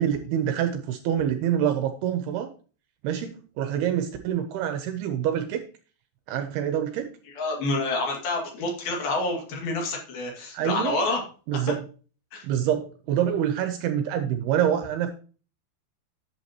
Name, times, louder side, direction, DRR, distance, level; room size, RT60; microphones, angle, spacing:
voice 1, 0.0-2.5 3.0-5.6 6.3-7.1 10.5-11.0 11.5-11.8 12.4-15.1, right 9 dB, 80° right, 7 dB, 2.5 m, -26 dB
voice 2, 7.3-11.2 11.5-11.7 12.3-12.5, left 2 dB, 60° left, 0 dB, 3.8 m, -28 dB
11.0 x 7.7 x 2.9 m, 0.37 s
omnidirectional pair, 5.1 m